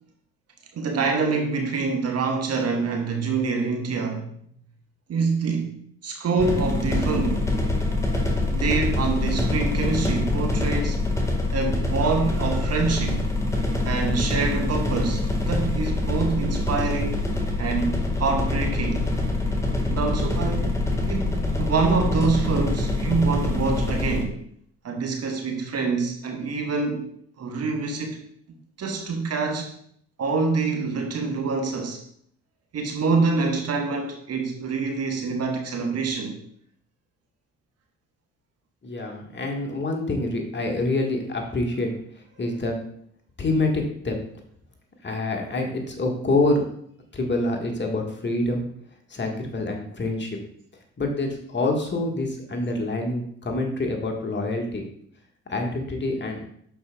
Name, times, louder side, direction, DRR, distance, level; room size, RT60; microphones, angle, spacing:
voice 1, 0.7-4.3 5.1-5.8 6.0-7.5 8.5-11.0 11.5-13.3 13.8-17.2 17.6-19.1 19.9-24.4 24.8-27.1 27.4-28.2 28.8-29.7 30.2-32.0 32.7-36.4, right 4 dB, 40° right, 3 dB, 1.3 m, -26 dB
sound 1, 6.4-24.2, left 2 dB, 10° left, 1.7 m, -25 dB
voice 2, 38.8-41.9 42.4-42.8 43.4-44.2 45.0-46.6 47.1-48.6 49.1-50.4 51.0-54.8 55.5-56.4, left 2 dB, 30° left, 2 dB, 1.6 m, -26 dB
11.5 x 4.6 x 2.3 m, 0.65 s
figure-of-eight pair, 45°, 37 cm